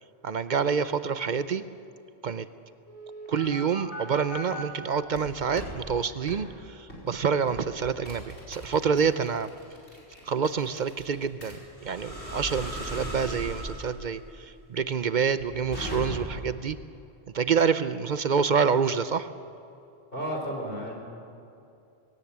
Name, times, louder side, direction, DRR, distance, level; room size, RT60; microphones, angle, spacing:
voice 1, 0.2-1.6 2.2-2.5 3.3-9.5 10.3-16.8 17.3-19.3, right 6 dB, 50° right, 13 dB, 0.7 m, -27 dB
sound 1, 2.9-4.6 5.1-5.8 6.3-6.4 6.9-7.1 7.5-16.5, equal, 85° left, 5.1 m, -38 dB
voice 2, 20.1-20.9, equal, 55° left, 0 dB, 4.2 m, -32 dB
19.5 x 17.5 x 8.7 m, 2.6 s
omnidirectional pair, 1.1 m